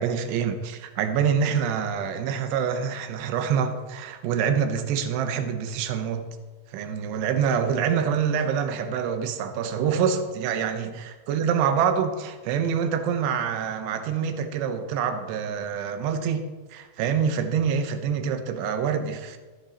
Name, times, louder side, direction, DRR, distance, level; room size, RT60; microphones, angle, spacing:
voice 1, 0.0-6.2 6.7-19.4, right 7 dB, 80° right, 8 dB, 2.5 m, -26 dB
14.5 x 10.5 x 4.1 m, 1.3 s
omnidirectional pair, 6.0 m